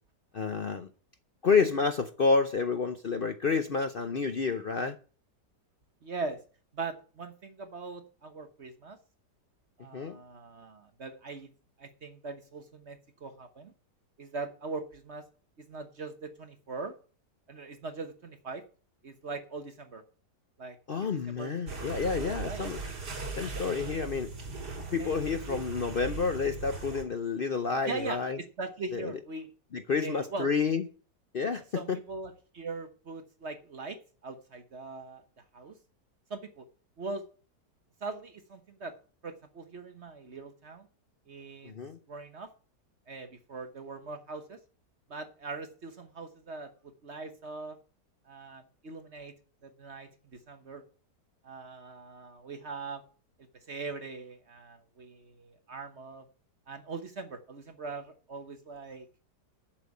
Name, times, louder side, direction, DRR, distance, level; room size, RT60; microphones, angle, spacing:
voice 1, 0.3-0.9 1.4-5.0 9.9-10.2 20.9-22.8 23.4-24.3 24.9-28.4 28.9-29.1 29.7-30.9 31.3-32.0 41.6-42.0, left 5 dB, 55° left, 0.6 m, -29 dB
voice 2, 6.0-6.4 6.7-9.0 9.8-11.5 11.8-13.7 14.2-15.2 15.6-17.0 17.5-18.6 19.0-20.0 20.6-21.5 22.4-22.7 25.0-25.2 25.4-25.6 27.9-29.5 30.0-30.5 31.7-35.2 35.5-35.8 36.3-36.6 37.0-37.2 38.0-38.9 39.2-40.9 41.3-41.7 42.1-42.5 43.1-44.6 45.1-47.8 48.3-49.3 49.6-50.8 51.4-53.0 53.7-56.2 56.7-59.1, right 3 dB, 45° right, 1.2 m, -41 dB
sound 1, 21.7-27.0, right 3 dB, 70° right, 3.4 m, -39 dB
7.5 x 7.0 x 8.3 m
omnidirectional pair, 1.8 m